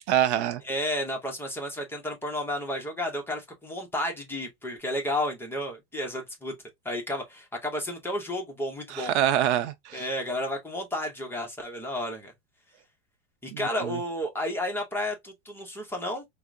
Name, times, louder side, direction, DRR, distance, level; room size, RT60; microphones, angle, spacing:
voice 1, 0.1-0.6 8.9-10.1 13.5-14.0, right 11 dB, 75° right, 0.6 m, -25 dB
voice 2, 0.6-6.5 6.8-9.1 9.9-12.3 13.4-16.2, left 1 dB, 5° left, 0.6 m, -32 dB
4.3 x 2.0 x 2.4 m
supercardioid pair, 145°, 35 cm